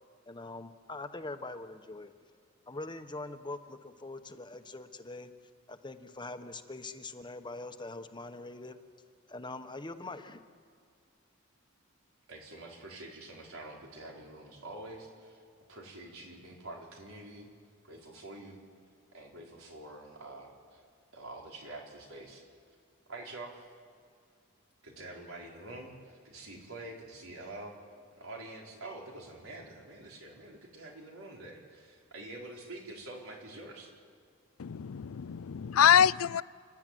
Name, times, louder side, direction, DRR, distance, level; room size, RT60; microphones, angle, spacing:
voice 1, 0.2-2.1 2.7-5.3 5.7-8.8 9.3-10.4, left 2 dB, 25° left, 8 dB, 1.0 m, -43 dB
voice 2, 12.3-15.4 15.7-17.5 17.8-18.6 19.1-20.8 21.1-22.4 23.1-23.7 24.8-27.7 28.2-33.9, right 2 dB, 85° right, -1 dB, 4.5 m, -46 dB
voice 3, 34.6-36.4, left 9 dB, 85° left, 20 dB, 0.4 m, -25 dB
29.5 x 12.0 x 9.2 m, 2.3 s
head